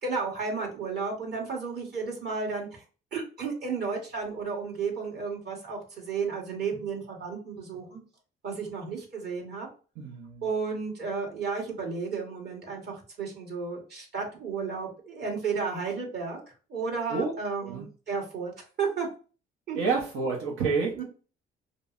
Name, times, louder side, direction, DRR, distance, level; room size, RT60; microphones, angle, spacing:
voice 1, 0.0-2.8 3.1-8.0 8.4-9.7 10.4-16.4 16.7-18.5 18.8-19.1 19.7-19.8 20.9-21.0, right 5 dB, 55° right, -1 dB, 1.7 m, -33 dB
voice 2, 10.0-10.5 17.1-17.3 17.6-17.8 19.8-21.0, right 4 dB, 85° right, -2 dB, 0.8 m, -29 dB
5.1 x 2.0 x 2.5 m, 0.36 s
cardioid pair, 90°, 20 cm